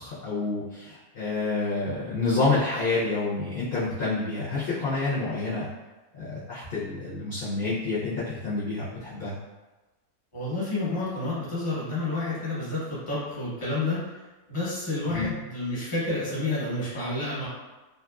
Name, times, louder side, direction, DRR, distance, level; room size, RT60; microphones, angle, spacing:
voice 1, 0.0-5.7 6.1-9.4 15.1-15.2, left 3 dB, 50° left, -10 dB, 0.7 m, -28 dB
voice 2, 10.3-14.2 14.5-17.5, left 2 dB, 25° left, -9 dB, 1.0 m, -30 dB
2.9 x 2.4 x 2.3 m, 1.1 s
omnidirectional pair, 1.6 m